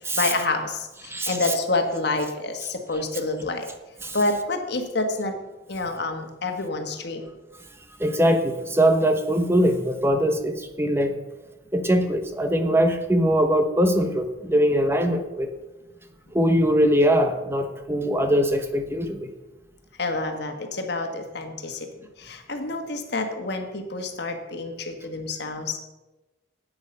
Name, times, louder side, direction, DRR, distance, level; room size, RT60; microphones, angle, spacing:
voice 1, 0.1-3.7 4.1-5.4 5.7-7.2 20.0-25.8, left 2 dB, 60° left, 5 dB, 1.5 m, -28 dB
voice 2, 8.0-11.2 11.7-15.5 16.3-19.3, equal, 15° right, 6 dB, 0.9 m, -22 dB
11.0 x 8.7 x 5.4 m, 1.1 s
head